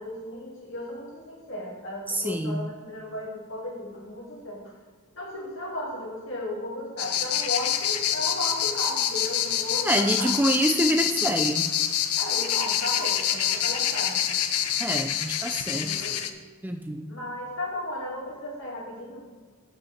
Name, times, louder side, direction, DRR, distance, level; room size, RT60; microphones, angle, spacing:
voice 1, 0.0-4.7 5.1-10.3 12.2-14.2 15.7-16.2 17.1-19.3, left 1 dB, 60° left, -3 dB, 2.6 m, -35 dB
voice 2, 2.1-2.6 9.8-11.7 14.8-15.9 16.6-17.1, right 1 dB, 10° right, 5 dB, 0.4 m, -26 dB
sound 1, 7.0-16.3, left 10 dB, 85° left, 0.7 m, -26 dB
7.9 x 5.7 x 6.6 m, 1.4 s
head